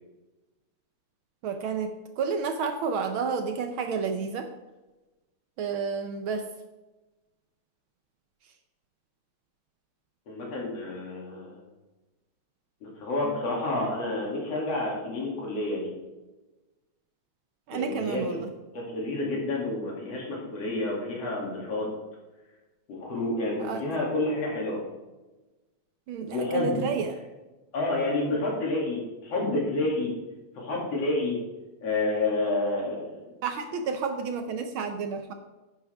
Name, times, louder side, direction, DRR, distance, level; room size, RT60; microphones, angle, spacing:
voice 1, 1.4-4.5 5.6-6.5 17.7-18.5 23.6-23.8 26.1-27.1 33.4-35.3, right 5 dB, 80° right, 7 dB, 1.1 m, -30 dB
voice 2, 10.3-11.6 12.8-15.9 17.7-18.4 18.7-21.9 22.9-24.8 26.3-26.9 27.7-30.1 30.6-31.4 31.8-33.3, left 2 dB, 60° left, -3 dB, 3.6 m, -29 dB
11.5 x 10.5 x 3.5 m, 1.1 s
omnidirectional pair, 3.3 m